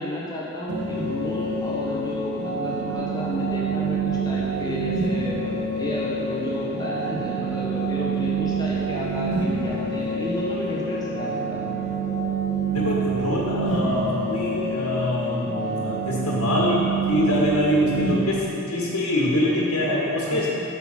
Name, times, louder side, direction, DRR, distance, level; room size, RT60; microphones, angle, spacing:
voice 1, 0.0-11.8 20.3-20.5, left 1 dB, 20° left, -6 dB, 1.0 m, -32 dB
sound 1, 0.7-18.1, right 3 dB, 45° right, 0.9 m, -27 dB
voice 2, 12.7-20.5, left 1 dB, 70° left, -5 dB, 1.9 m, -24 dB
6.0 x 5.6 x 5.9 m, 2.9 s
head